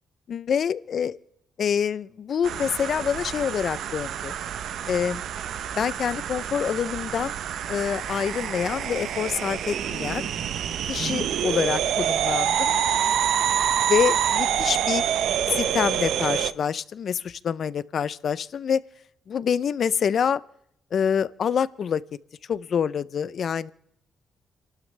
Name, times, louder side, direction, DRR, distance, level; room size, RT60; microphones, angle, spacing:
voice 1, 0.3-1.2 1.6-4.3 4.9-5.2 5.8-7.3 7.7-10.3 10.9-12.8 13.0-13.2 13.9-15.0 15.5-18.8 19.3-20.4 20.9-22.0 22.5-23.7, left 7 dB, 50° left, 18 dB, 0.5 m, -26 dB
sound 1, 2.4-16.5, right 9 dB, 70° right, 0.7 m, -27 dB
29.5 x 12.5 x 3.3 m, 0.75 s
cardioid pair, 145°, 0 cm